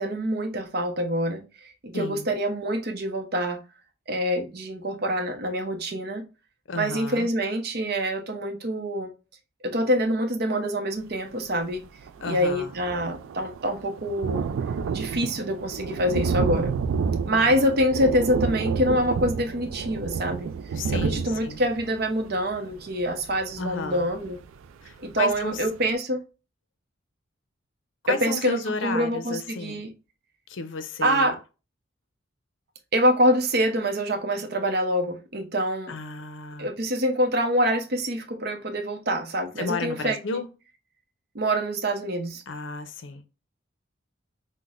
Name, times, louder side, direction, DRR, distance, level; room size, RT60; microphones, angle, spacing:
voice 1, 0.0-3.6 4.1-6.2 6.7-9.1 9.6-11.8 12.2-14.4 14.9-16.7 17.2-20.5 20.9-24.4 25.0-26.2 28.1-29.9 31.0-31.4 32.9-36.0 36.6-40.4 41.3-42.4, equal, 50° right, 0.7 m, -26 dB
voice 2, 1.9-2.3 6.7-7.3 12.2-12.7 17.4-17.6 20.8-21.6 23.6-24.1 24.8-25.6 28.0-29.8 30.5-31.3 35.9-36.7 39.6-40.5 42.5-43.2, left 4 dB, 65° left, 0.5 m, -32 dB
Thunder, 11.7-11.8 12.1-24.7 25.2-25.3 25.6-25.7, right 6 dB, 85° right, 0.3 m, -30 dB
5.8 x 2.1 x 2.4 m
head